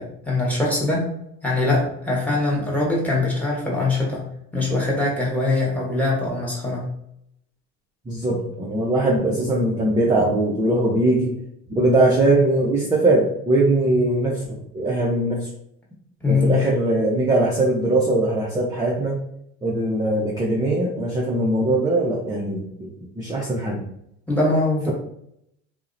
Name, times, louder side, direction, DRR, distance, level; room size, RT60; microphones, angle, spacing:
voice 1, 0.0-4.3 4.5-6.8 16.2-16.6 24.3-24.9, left 2 dB, 5° left, -4 dB, 1.0 m, -22 dB
voice 2, 8.1-11.3 11.7-15.5 16.3-19.2 19.6-22.9 23.2-23.8, right 2 dB, 10° right, -4 dB, 0.5 m, -21 dB
2.7 x 2.1 x 2.5 m, 0.75 s
supercardioid pair, 95°, 36 cm